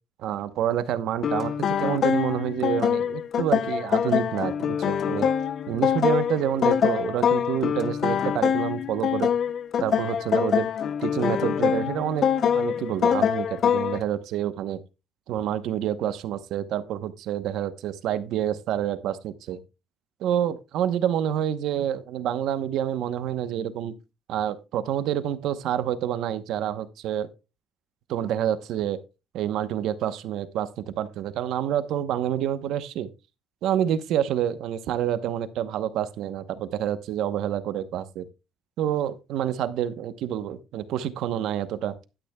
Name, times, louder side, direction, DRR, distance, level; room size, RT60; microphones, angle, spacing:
voice 1, 0.2-5.3 5.7-9.3 9.8-10.7 11.0-12.3 12.5-14.8 15.3-19.6 20.2-23.9 24.3-27.3 28.1-29.0 29.3-30.7 31.0-33.1 33.6-38.3 38.8-42.0, right 10 dB, 80° right, 0.9 m, -28 dB
sound 1, 1.2-14.0, left 8 dB, 55° left, 0.6 m, -24 dB
11.5 x 10.0 x 2.2 m
cardioid pair, 110°, 0 cm